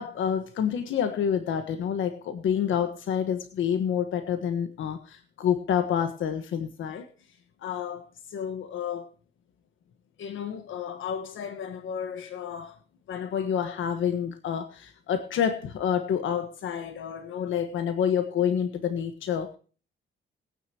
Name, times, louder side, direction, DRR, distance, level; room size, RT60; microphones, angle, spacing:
voice 1, 0.0-7.1 7.6-9.1 10.2-12.8 13.1-19.6, left 8 dB, 75° left, 1.4 m, -29 dB
21.0 x 9.5 x 2.9 m
cardioid pair, 145°, 20 cm